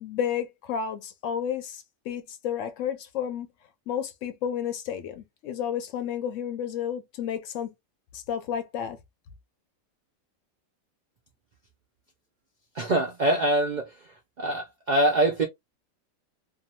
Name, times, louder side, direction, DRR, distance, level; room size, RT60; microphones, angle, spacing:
voice 1, 0.0-3.5 3.9-7.7 8.1-9.0, left 9 dB, 70° left, 0.9 m, -31 dB
voice 2, 12.8-13.9 14.4-15.5, right 1 dB, 60° right, 0.4 m, -24 dB
2.7 x 2.2 x 2.7 m
omnidirectional pair, 1.5 m